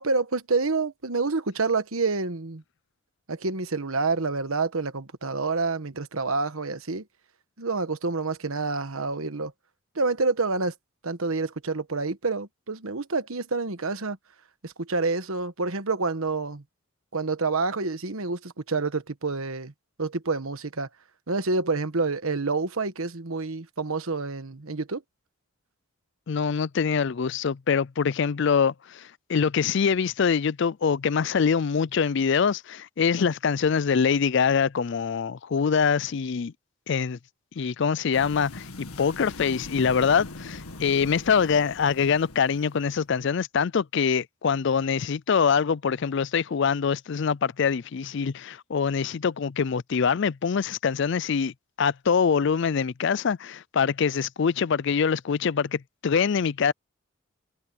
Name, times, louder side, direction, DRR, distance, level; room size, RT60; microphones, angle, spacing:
voice 1, 0.0-2.6 3.3-7.0 7.6-9.5 9.9-10.7 11.0-14.2 14.6-16.6 17.1-19.7 20.0-20.9 21.3-25.0, right 3 dB, 75° right, 1.3 m, -28 dB
voice 2, 26.3-36.5 36.9-37.2 37.6-56.7, left 6 dB, 55° left, 0.4 m, -24 dB
sound 1, 38.1-43.1, left 2 dB, 85° left, 2.0 m, -41 dB
head